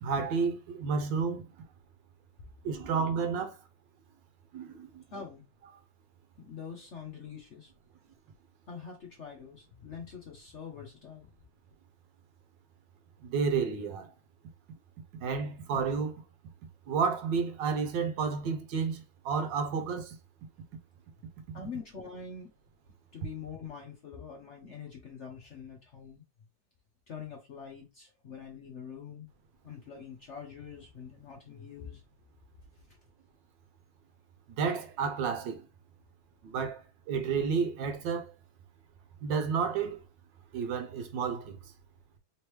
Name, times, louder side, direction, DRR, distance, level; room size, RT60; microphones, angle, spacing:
voice 1, 0.0-1.4 2.6-3.5 4.5-5.0 13.2-14.1 15.2-16.1 16.9-20.2 34.6-35.6 36.4-36.8 37.1-38.3 39.2-40.0 40.5-41.6, right 5 dB, 70° right, 1.3 m, -31 dB
voice 2, 5.1-5.4 6.4-7.7 8.7-11.3 21.5-22.5 23.1-26.2 27.1-29.3 29.6-32.0 32.7-33.0, left 6 dB, 75° left, 0.6 m, -44 dB
3.5 x 3.1 x 3.1 m
omnidirectional pair, 2.2 m